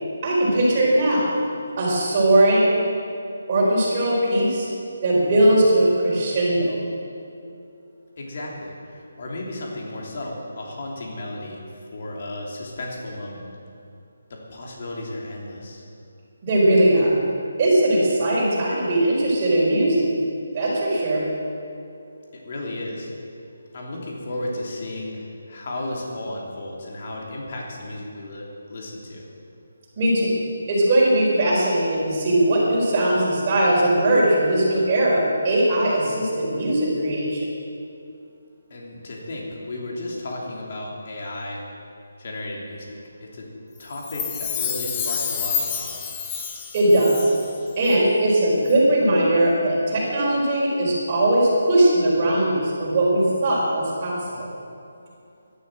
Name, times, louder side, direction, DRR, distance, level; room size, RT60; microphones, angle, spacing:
voice 1, 0.2-1.3 1.8-2.6 3.5-4.7 5.0-6.8 16.4-17.1 17.6-20.0 20.5-21.2 30.0-30.3 30.7-37.4 46.7-47.2 47.8-54.5, right 1 dB, 25° right, -5 dB, 4.6 m, -19 dB
voice 2, 8.2-11.6 11.9-13.4 14.3-15.8 22.3-23.1 23.7-29.2 38.7-41.6 42.2-43.5 43.8-45.9, left 1 dB, 45° left, -2 dB, 3.0 m, -34 dB
Chime, 43.9-47.6 47.8-47.9, left 7 dB, 15° left, 0.9 m, -29 dB
12.5 x 11.5 x 7.7 m, 2.6 s
hypercardioid pair, 170°, 0 cm